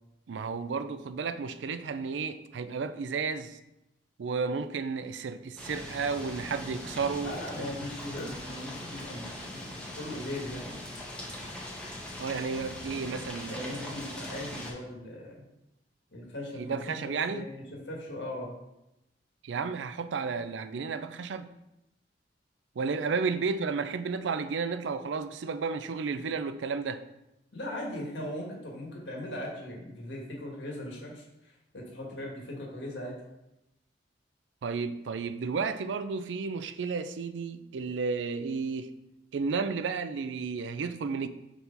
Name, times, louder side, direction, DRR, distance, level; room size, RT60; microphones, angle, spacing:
voice 1, 0.3-3.6 4.2-7.9 12.2-13.9 16.6-17.5 19.4-21.5 22.8-27.0 34.6-38.9 39.3-41.3, right 5 dB, 85° right, 0.4 m, -32 dB
sound 1, 5.6-14.7, left 1 dB, 5° left, 1.0 m, -41 dB
voice 2, 7.2-10.8 13.5-15.4 16.1-18.5 23.0-23.2 27.5-33.2, left 1 dB, 75° left, 1.7 m, -39 dB
4.6 x 4.2 x 5.3 m
head